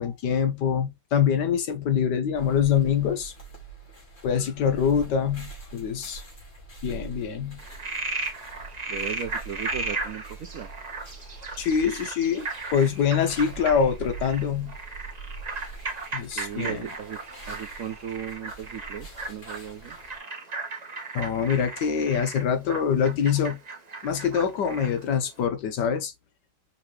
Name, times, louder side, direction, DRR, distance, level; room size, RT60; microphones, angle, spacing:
voice 1, 0.0-3.3 4.2-6.2 6.8-7.6 11.6-14.7 16.1-16.8 21.1-23.6 24.0-26.1, left 7 dB, 65° left, 1.2 m, -25 dB
sound 1, 2.3-20.2, right 3 dB, 35° left, 2.5 m, -44 dB
Frog, 7.6-25.0, right 3 dB, 45° right, 0.5 m, -36 dB
voice 2, 8.9-10.7 16.4-17.2 17.5-20.0, right 8 dB, 80° right, 0.7 m, -36 dB
5.4 x 3.0 x 3.2 m
omnidirectional pair, 2.2 m